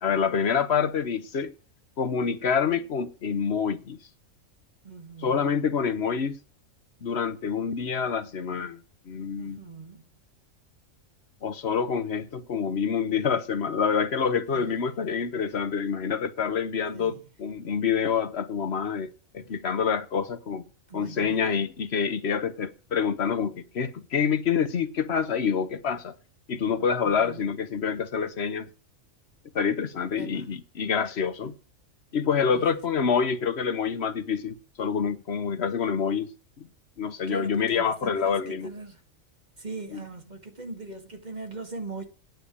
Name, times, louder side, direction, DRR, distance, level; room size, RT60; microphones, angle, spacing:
voice 1, 0.0-1.5 2.0-4.0 5.2-6.4 7.0-8.8 9.1-9.6 11.4-20.6 20.9-26.1 26.5-28.7 29.5-31.5 32.1-36.3 36.6-36.7 37.0-38.7 39.9-40.0, left 6 dB, 55° left, 1.3 m, -27 dB
voice 2, 4.8-5.7 9.4-10.1 14.5-14.7 16.9-17.2 20.9-21.5 27.0-27.5 30.2-30.5 32.5-32.8 37.3-39.0 39.6-42.0, right 3 dB, 30° right, 2.0 m, -40 dB
9.4 x 7.0 x 8.3 m
omnidirectional pair, 1.4 m